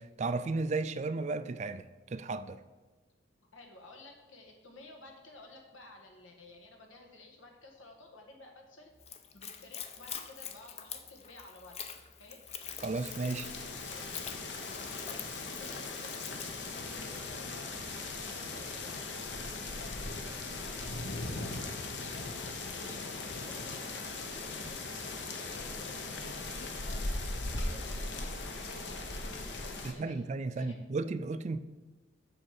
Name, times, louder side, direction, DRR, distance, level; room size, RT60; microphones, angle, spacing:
voice 1, 0.0-2.6 12.8-13.5 29.8-31.6, right 3 dB, 35° right, 0.3 m, -34 dB
voice 2, 3.5-8.9 9.3-12.4 13.5-14.1 14.7-19.0 19.5-22.3 22.7-24.8 25.3-29.1 29.6-30.3 30.5-30.8, left 2 dB, 90° left, 1.7 m, -53 dB
Splash splatter / Trickle dribble, 9.0-17.3, left 8 dB, 35° left, 0.5 m, -45 dB
sound 1, 12.6-29.9, left 3 dB, 65° left, 1.1 m, -39 dB
8.0 x 6.5 x 5.9 m
head